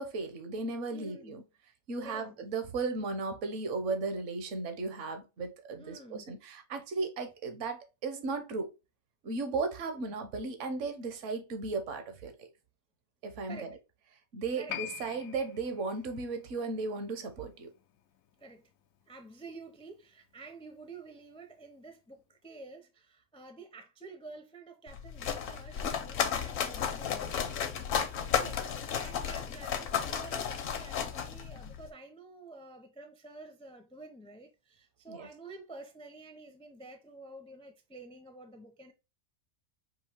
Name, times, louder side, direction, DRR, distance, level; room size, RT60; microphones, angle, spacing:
voice 1, 0.0-1.4 1.9-8.7 9.2-12.5 13.2-13.7 14.3-17.7 28.4-28.6 35.1-35.3, right 3 dB, 65° right, 1.2 m, -36 dB
voice 2, 0.9-1.4 2.0-2.4 5.8-6.3 9.9-10.2 13.5-13.8 14.5-14.8 18.4-18.7 19.1-27.4 28.2-38.9, right 3 dB, 5° left, 0.4 m, -50 dB
Piano, 14.7-21.7 21.9-22.0, left 11 dB, 90° left, 1.0 m, -47 dB
sound 1, 24.9-31.9, left 8 dB, 70° left, 1.1 m, -33 dB
5.4 x 2.7 x 3.4 m
omnidirectional pair, 1.4 m